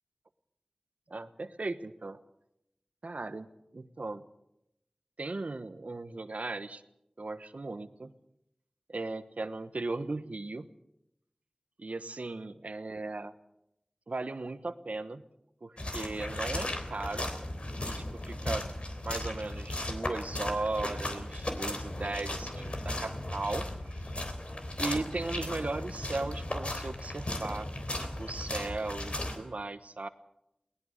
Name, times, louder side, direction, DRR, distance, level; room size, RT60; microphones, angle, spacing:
voice 1, 1.1-2.2 3.0-3.5 3.7-4.2 5.2-6.8 7.2-8.1 8.9-10.7 11.8-13.3 14.1-15.2 15.6-17.3 17.8-18.7 19.0-24.0 24.8-27.7 28.0-30.1, right 2 dB, 75° right, 11 dB, 1.2 m, -37 dB
sound 1, 15.8-29.4, left 1 dB, 55° left, 3.5 m, -36 dB
21.5 x 19.0 x 6.6 m, 0.84 s
wide cardioid pair, 45°, 2 cm